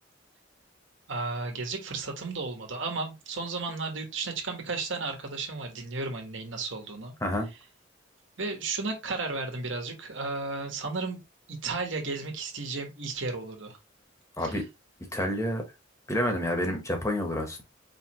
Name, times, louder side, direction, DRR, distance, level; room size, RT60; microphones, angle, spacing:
voice 1, 1.1-7.1 8.4-11.2 11.5-13.8 14.4-14.6, right 3 dB, 70° right, 1.5 m, -34 dB
voice 2, 15.1-15.6 16.1-17.6, left 1 dB, 15° left, 1.3 m, -28 dB
4.9 x 3.3 x 3.1 m
head